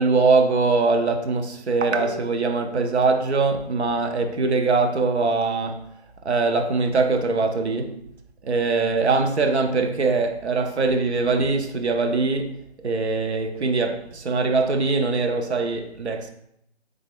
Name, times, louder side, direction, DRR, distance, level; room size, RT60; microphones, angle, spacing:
voice 1, 0.0-5.8 6.2-8.0 8.4-12.6 12.8-16.3, right 3 dB, 85° right, 0.7 m, -22 dB
3.6 x 3.2 x 3.5 m
figure-of-eight pair, 165°, 32 cm